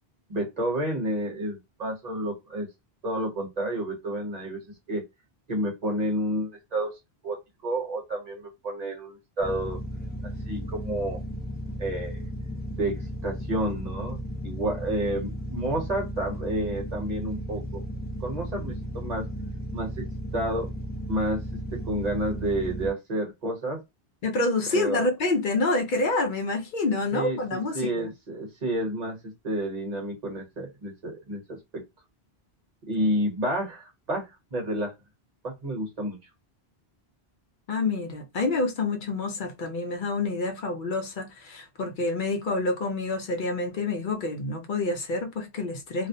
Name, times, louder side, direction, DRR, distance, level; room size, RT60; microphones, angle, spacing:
voice 1, 0.3-2.7 3.0-4.6 4.9-5.0 5.5-6.9 7.2-7.4 7.6-9.8 10.4-11.2 11.8-12.3 12.7-13.0 13.2-17.8 18.2-19.2 19.7-20.1 20.3-20.7 21.1-21.4 21.7-23.8 24.7-25.0 27.1-31.8 32.9-34.9 35.4-36.2, right 1 dB, 40° right, 1.0 m, -30 dB
sound 1, 9.4-22.9, equal, 10° left, 0.6 m, -35 dB
voice 2, 24.2-28.1 37.7-46.1, left 3 dB, 60° left, 0.6 m, -27 dB
2.4 x 2.0 x 2.6 m
omnidirectional pair, 1.1 m